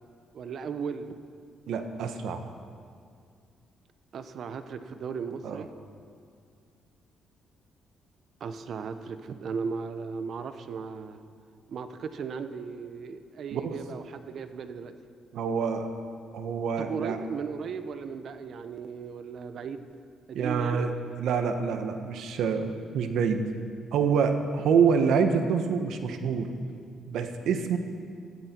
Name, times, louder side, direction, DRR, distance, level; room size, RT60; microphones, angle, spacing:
voice 1, 0.3-1.1 4.1-5.7 8.4-11.2 11.7-15.0 16.8-19.9 20.3-21.0, right 5 dB, 60° right, 10 dB, 1.0 m, -36 dB
voice 2, 1.7-2.4 5.4-5.6 13.5-13.8 15.3-15.9 16.3-17.2 20.3-20.9 21.2-23.4 23.9-26.5 27.1-27.8, right 6 dB, 80° right, 7 dB, 1.3 m, -26 dB
20.0 x 14.5 x 4.6 m, 2.2 s
cardioid pair, 90°, 0 cm